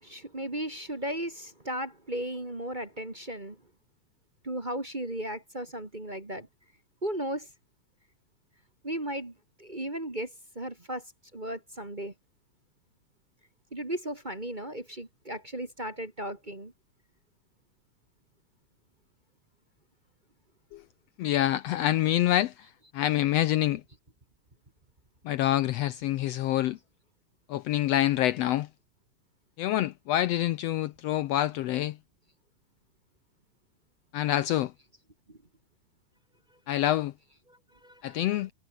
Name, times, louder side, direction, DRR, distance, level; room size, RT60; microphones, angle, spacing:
voice 1, 0.0-3.6 4.4-6.5 7.0-7.5 8.8-11.1 11.3-12.1 13.7-16.7 35.3-35.4 37.5-38.5, right 1 dB, 20° right, 1.8 m, -36 dB
voice 2, 21.2-22.5 22.9-23.8 25.2-26.8 27.5-28.7 29.6-31.9 34.1-34.7 36.7-37.1 38.0-38.5, left 13 dB, 75° left, 1.6 m, -26 dB
omnidirectional pair, 3.3 m